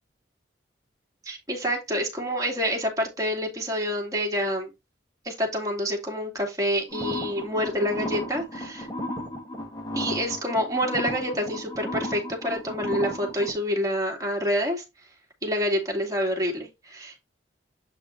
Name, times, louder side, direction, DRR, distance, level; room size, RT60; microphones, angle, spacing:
voice 1, 1.2-4.7 5.2-8.9 9.9-14.8 15.4-17.1, equal, 20° right, 2.5 m, -27 dB
sound 1, 6.9-13.5, left 1 dB, 20° left, 1.8 m, -34 dB
8.2 x 4.7 x 3.3 m
head